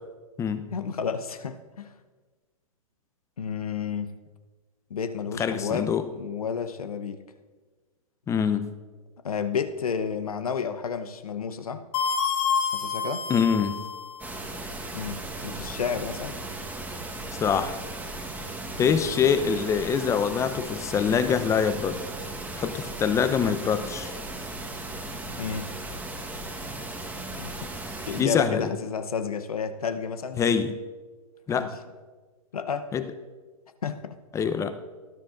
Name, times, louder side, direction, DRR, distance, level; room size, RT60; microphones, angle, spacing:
voice 1, 0.7-1.9 3.4-4.1 4.9-7.2 9.2-11.8 12.7-13.3 14.9-16.4 18.8-19.0 25.4-25.7 27.4-27.7 28.1-30.4 31.5-31.7 32.5-32.9 33.8-34.2, left 6 dB, 80° left, 9 dB, 0.9 m, -31 dB
voice 2, 5.4-6.1 8.3-8.7 13.3-13.8 17.4-17.7 18.8-22.0 22.5-24.1 28.2-28.7 30.4-30.7 31.5-31.7 32.9-33.0 34.3-34.8, left 7 dB, 15° left, 11 dB, 0.7 m, -24 dB
sound 1, 11.9-14.3, left 6 dB, 50° left, 2.1 m, -28 dB
sound 2, 14.2-28.2, right 2 dB, 10° right, 1.2 m, -36 dB
19.0 x 10.5 x 2.5 m, 1.4 s
hypercardioid pair, 120°, 18 cm